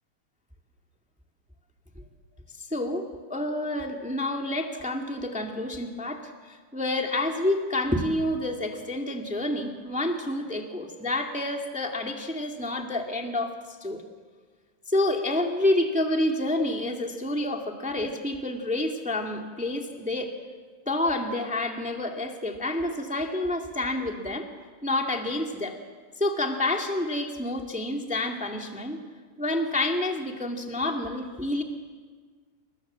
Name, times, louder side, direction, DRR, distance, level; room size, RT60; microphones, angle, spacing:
voice 1, 2.7-13.5 13.8-14.0 14.9-20.3 20.8-24.5 24.8-25.8 26.2-29.0 29.4-31.6, left 1 dB, 5° right, 2 dB, 1.5 m, -28 dB
29.5 x 22.5 x 7.5 m, 1.5 s
omnidirectional pair, 3.6 m